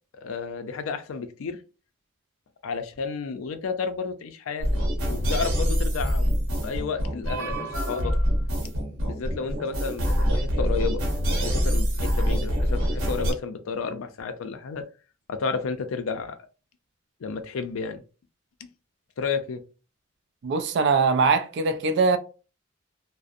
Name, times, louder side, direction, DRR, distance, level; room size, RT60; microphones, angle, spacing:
voice 1, 0.1-1.6 2.6-4.7 5.0-6.3 6.6-8.2 8.6-8.7 9.0-11.0 11.3-14.9 15.3-16.4 17.2-18.0 18.6-18.7 19.2-19.6, left 5 dB, 90° left, 0.4 m, -32 dB
sound 1, 4.6-13.3, equal, 85° right, 0.8 m, -25 dB
voice 2, 20.4-22.2, right 4 dB, 60° right, 0.3 m, -22 dB
2.4 x 2.0 x 2.6 m
head